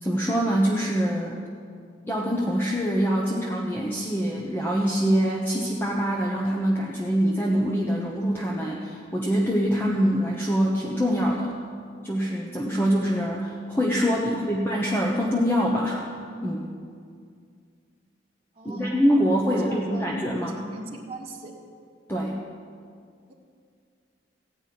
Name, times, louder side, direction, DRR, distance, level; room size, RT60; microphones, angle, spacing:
voice 1, 0.0-1.4 2.1-11.5 12.0-16.0 16.4-16.7 18.6-20.6 22.1-22.4, equal, 10° left, -3 dB, 1.0 m, -24 dB
voice 2, 14.1-14.7 18.5-19.0 19.5-20.1 20.4-21.5, right 2 dB, 35° right, -3 dB, 1.5 m, -41 dB
15.5 x 5.4 x 9.4 m, 2.2 s
head